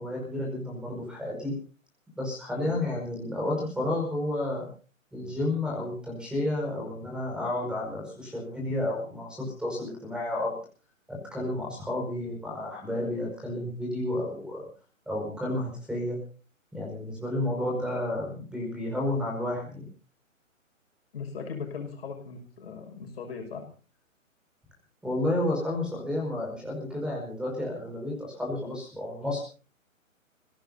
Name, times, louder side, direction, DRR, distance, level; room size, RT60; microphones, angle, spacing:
voice 1, 0.0-1.6 2.2-4.7 5.1-10.6 11.1-14.6 15.1-16.2 16.7-19.9 25.0-29.4, left 1 dB, ahead, -1 dB, 5.2 m, -31 dB
voice 2, 21.1-23.6, left 5 dB, 45° left, 3 dB, 6.0 m, -39 dB
30.0 x 17.0 x 2.7 m, 0.37 s
figure-of-eight pair, 135°, 41 cm